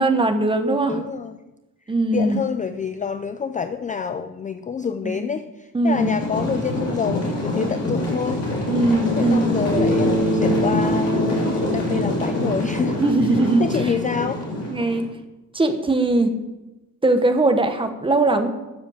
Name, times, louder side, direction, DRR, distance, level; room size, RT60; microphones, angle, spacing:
voice 1, 0.0-1.0 1.9-2.4 5.0-5.3 5.7-6.2 8.7-9.6 13.0-13.9 14.7-15.1 15.5-16.4 17.0-18.5, right 2 dB, 15° right, 7 dB, 1.0 m, -20 dB
voice 2, 0.9-1.3 2.1-8.5 9.2-13.0 13.6-14.4, left 6 dB, 25° left, 10 dB, 0.3 m, -27 dB
sound 1, 5.9-15.0, left 1 dB, 45° left, 4.0 m, -25 dB
Bass guitar, 9.7-14.1, right 1 dB, 35° right, 3.9 m, -25 dB
12.0 x 7.4 x 7.1 m, 1.1 s
wide cardioid pair, 170°, 34 cm